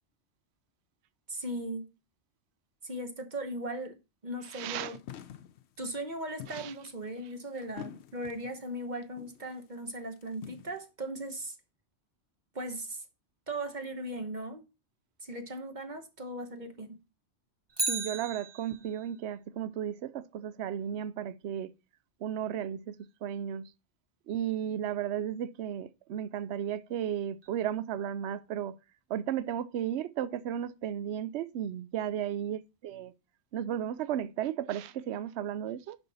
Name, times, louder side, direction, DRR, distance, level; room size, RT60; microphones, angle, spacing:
voice 1, 1.3-1.8 2.8-4.0 4.2-5.0 5.8-11.6 12.5-13.0 13.5-14.6 15.2-17.0, right 1 dB, 40° right, 1.2 m, -38 dB
voice 2, 4.4-5.0 6.5-6.7 17.9-21.7 22.2-23.7 24.3-28.8 29.1-33.1 33.5-36.0, right 10 dB, 70° right, 0.9 m, -34 dB
sound 1, 4.9-5.6 6.4-8.6 9.2-9.5 10.0-10.8, left 10 dB, 70° left, 0.9 m, -46 dB
Bicycle, 17.7-19.1 27.4-27.5, right 3 dB, 25° right, 0.7 m, -34 dB
10.5 x 4.4 x 4.1 m
omnidirectional pair, 1.2 m